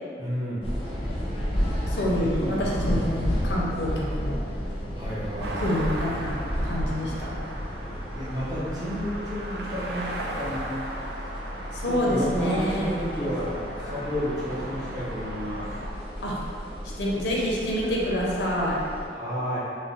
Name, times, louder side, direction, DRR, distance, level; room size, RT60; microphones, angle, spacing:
voice 1, 0.2-0.7 2.1-3.1 5.0-5.7 8.1-10.1 10.4-10.9 11.9-13.5 13.8-15.7 19.1-19.6, equal, 20° right, -10 dB, 0.7 m, -31 dB
sound 1, 0.6-19.1, equal, 30° left, 0.5 m, -32 dB
voice 2, 1.9-4.4 5.5-7.3 11.7-12.9 16.2-16.4 17.0-18.8, equal, 75° left, -4 dB, 0.5 m, -27 dB
sound 2, 5.4-15.9, right 1 dB, 65° right, 0.3 m, -37 dB
2.4 x 2.1 x 3.8 m, 2.4 s
head